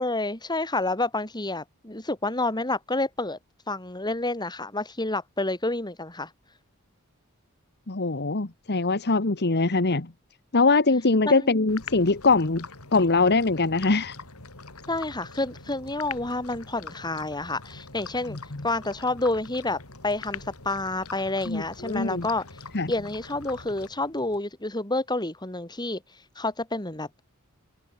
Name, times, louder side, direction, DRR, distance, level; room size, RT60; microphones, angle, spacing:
voice 1, 0.0-3.4 3.7-6.3 11.2-11.7 14.9-18.4 18.6-22.5 22.9-26.0 26.4-27.2, left 2 dB, 20° left, 4.4 m, -29 dB
voice 2, 7.9-10.1 10.5-12.7 12.9-14.1 18.3-18.4 21.5-22.3 22.7-22.9, left 3 dB, 50° left, 1.4 m, -22 dB
sound 1, 11.7-24.4, left 4 dB, 85° left, 6.9 m, -43 dB
open air
head